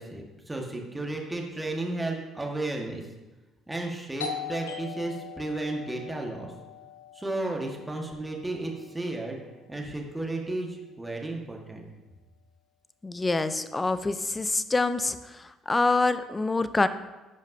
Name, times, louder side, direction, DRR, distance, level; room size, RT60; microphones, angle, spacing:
voice 1, 0.0-3.0 3.7-6.5 7.1-9.4 9.7-11.9, right 2 dB, 15° right, 0 dB, 1.5 m, -33 dB
Doorbell, 4.2-9.6, left 8 dB, 85° left, 0.6 m, -41 dB
voice 2, 13.0-15.2 15.7-16.9, left 3 dB, 20° left, 13 dB, 0.5 m, -25 dB
11.0 x 5.1 x 2.7 m, 1.1 s
hypercardioid pair, 60°, 0 cm